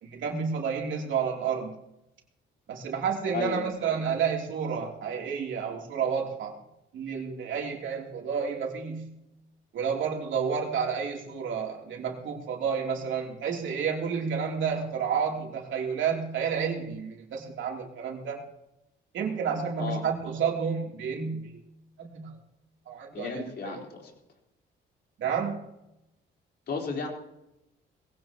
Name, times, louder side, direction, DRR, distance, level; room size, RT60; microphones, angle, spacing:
voice 1, 0.0-1.7 2.7-6.5 6.9-9.1 9.7-18.4 19.1-21.6 22.0-22.4 22.9-23.8 25.2-25.6, right 6 dB, 75° right, 0 dB, 3.2 m, -30 dB
voice 2, 3.3-3.6 19.8-20.0 23.1-24.1 26.7-27.1, left 5 dB, 55° left, 1 dB, 4.1 m, -33 dB
21.0 x 16.5 x 3.0 m, 0.87 s
cardioid pair, 90°, 20 cm